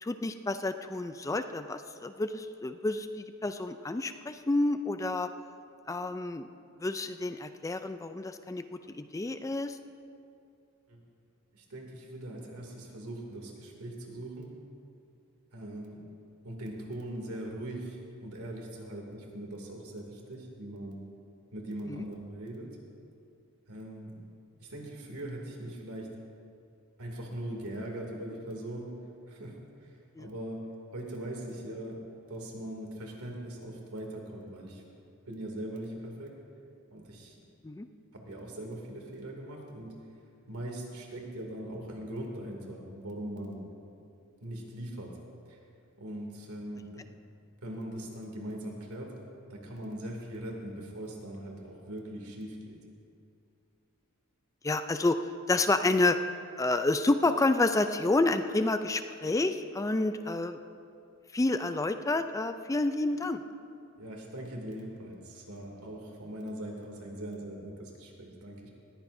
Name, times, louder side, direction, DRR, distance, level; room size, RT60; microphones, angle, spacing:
voice 1, 0.0-5.3 5.9-6.5 6.8-9.8 21.9-22.0 30.2-30.3 37.6-37.9 54.6-55.2 55.5-56.2 56.6-60.6 61.3-63.4, left 2 dB, 15° left, 9 dB, 0.4 m, -29 dB
voice 2, 11.5-14.5 15.5-16.1 16.4-21.0 21.5-22.8 23.7-24.2 24.6-26.2 27.0-29.0 29.3-32.0 32.3-34.8 35.3-36.4 36.9-37.4 38.1-40.0 40.5-43.6 44.4-45.2 45.5-45.6 46.0-47.1 47.6-49.1 49.5-52.8 64.0-68.7, right 1 dB, 85° right, 0 dB, 2.6 m, -41 dB
20.0 x 15.0 x 2.7 m, 2.5 s
head